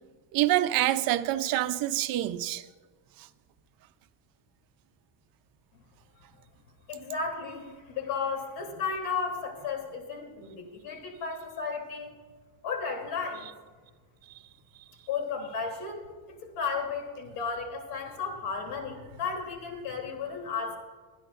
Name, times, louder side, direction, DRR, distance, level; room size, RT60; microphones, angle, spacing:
voice 1, 0.3-2.6, right 14 dB, 50° right, 0.6 m, -26 dB
voice 2, 6.9-12.1 12.6-13.5 15.1-16.0 16.4-20.8, left 5 dB, 70° left, 3.2 m, -34 dB
24.0 x 10.5 x 2.5 m
cardioid pair, 175°, 47 cm